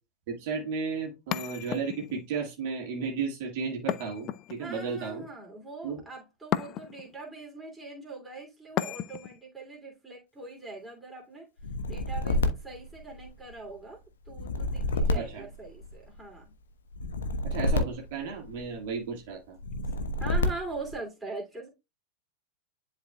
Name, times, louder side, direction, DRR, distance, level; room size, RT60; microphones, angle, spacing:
voice 1, 0.3-5.2 5.8-6.0 15.1-15.5 17.4-19.6, right 5 dB, 50° right, 1.9 m, -34 dB
sound 1, 1.3-2.3 3.9-4.9 6.5-7.1 8.8-9.4, left 12 dB, 35° left, 0.3 m, -33 dB
voice 2, 4.6-11.5 11.9-16.5 20.2-21.7, right 3 dB, 10° right, 2.9 m, -42 dB
sound 2, 11.6-13.6 14.3-16.2 16.9-18.8 19.6-20.9, left 1 dB, 65° left, 1.0 m, -29 dB
11.0 x 4.3 x 2.3 m
figure-of-eight pair, 90°, 0 cm